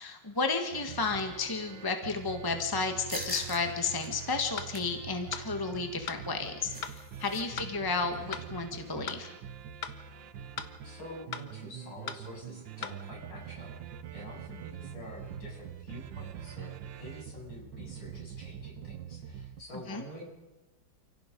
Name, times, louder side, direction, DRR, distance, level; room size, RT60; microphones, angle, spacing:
voice 1, 0.0-9.4 19.9-20.0, left 4 dB, 10° left, 5 dB, 1.6 m, -32 dB
sound 1, 0.7-19.6, right 9 dB, 70° right, 1.7 m, -45 dB
sound 2, 3.1-3.6 4.0-4.1 4.5-5.0 6.2-7.4 7.7-7.8 8.1-8.4, right 1 dB, 15° right, 4.3 m, -41 dB
sound 3, 4.6-4.7 5.3-5.5 6.1-6.2 6.8-7.0 7.6-7.7 8.3-8.5 9.1-9.2 9.8-10.0 10.6-10.7 11.3-11.5 12.1-12.2 12.8-13.0, left 7 dB, 90° left, 2.1 m, -38 dB
voice 2, 7.5-7.9 10.8-13.7 14.1-20.2, left 1 dB, 65° left, -2 dB, 8.7 m, -47 dB
29.0 x 17.0 x 5.4 m, 1.1 s
omnidirectional pair, 2.1 m